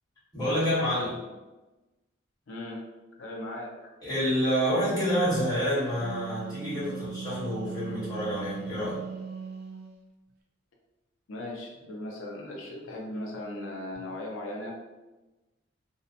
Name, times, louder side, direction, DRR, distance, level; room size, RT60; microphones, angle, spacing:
voice 1, 0.3-1.2 4.0-9.0 13.9-14.0, equal, 20° left, -11 dB, 1.2 m, -28 dB
voice 2, 2.5-2.8 3.2-3.9 11.3-14.7, left 1 dB, 75° left, -1 dB, 0.5 m, -38 dB
Wind instrument woodwind instrument, 5.7-9.9, right 6 dB, 50° right, 0.4 m, -39 dB
2.7 x 2.1 x 2.5 m, 1.1 s
head